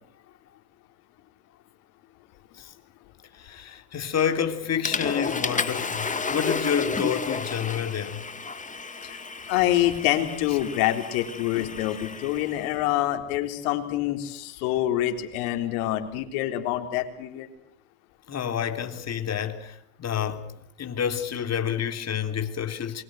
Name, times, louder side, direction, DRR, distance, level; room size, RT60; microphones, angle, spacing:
voice 1, 3.3-8.2 18.3-20.5 20.8-23.0, left 8 dB, 35° left, 3.5 m, -29 dB
Water / Toilet flush, 4.2-4.4 4.8-12.7, left 4 dB, 15° left, 2.2 m, -32 dB
voice 2, 9.5-17.5, left 13 dB, 70° left, 4.1 m, -26 dB
27.5 x 23.0 x 7.9 m
supercardioid pair, 95°, 44 cm